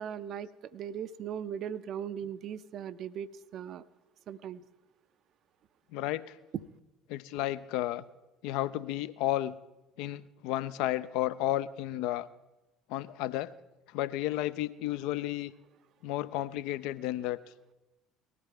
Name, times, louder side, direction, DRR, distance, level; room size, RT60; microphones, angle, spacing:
voice 1, 0.0-3.8 4.3-4.6 6.5-6.6, right 9 dB, 50° right, 13 dB, 0.5 m, -38 dB
voice 2, 5.9-6.4 7.1-8.0 8.4-9.6 10.0-12.3 12.9-13.5 13.9-15.5 16.0-17.4, left 14 dB, 60° left, 16 dB, 0.4 m, -32 dB
19.0 x 13.5 x 3.7 m, 1.1 s
figure-of-eight pair, 60°, 0 cm